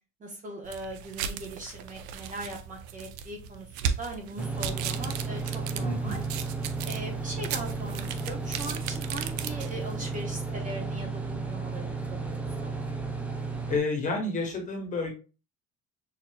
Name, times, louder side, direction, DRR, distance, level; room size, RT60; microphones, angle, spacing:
voice 1, 0.2-6.2 6.8-12.7, right 1 dB, 25° right, 1 dB, 0.9 m, -40 dB
sound 1, 0.6-10.0, right 8 dB, 70° right, 0.6 m, -37 dB
sound 2, 4.4-13.8, right 4 dB, 5° right, 0.3 m, -33 dB
voice 2, 5.8-6.2 13.7-15.1, left 2 dB, 25° left, 1 dB, 1.3 m, -29 dB
6.6 x 2.7 x 2.2 m, 0.33 s
cardioid pair, 160°, 30 cm